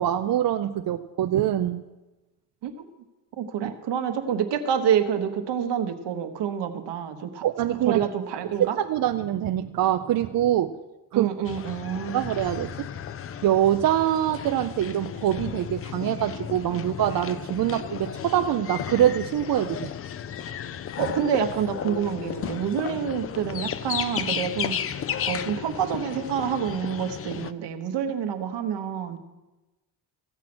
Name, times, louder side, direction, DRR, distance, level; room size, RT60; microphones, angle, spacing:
voice 1, 0.0-1.8 7.4-8.0 8.6-10.8 11.1-11.3 12.1-12.9 13.4-19.9, right 11 dB, 55° right, 7 dB, 0.5 m, -24 dB
voice 2, 3.4-7.4 7.8-8.8 11.1-12.2 21.0-29.2, right 8 dB, 75° right, 7 dB, 1.2 m, -27 dB
sound 1, 11.4-27.5, left 9 dB, 35° left, 0.4 m, -34 dB
15.0 x 7.4 x 6.1 m, 1.1 s
cardioid pair, 115°, 42 cm